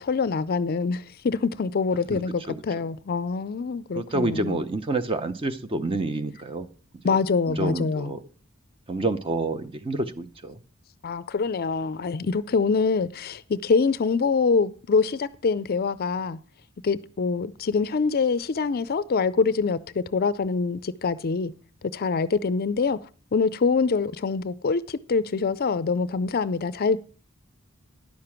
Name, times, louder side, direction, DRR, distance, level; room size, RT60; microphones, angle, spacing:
voice 1, 0.0-4.6 7.0-8.1 11.0-16.4 16.8-21.5 21.9-23.0 23.3-27.0, left 4 dB, 45° left, 0.4 m, -25 dB
voice 2, 3.9-6.7 7.0-7.1 7.5-8.2 8.9-10.6, right 2 dB, 25° right, 0.6 m, -28 dB
10.5 x 6.8 x 5.8 m
head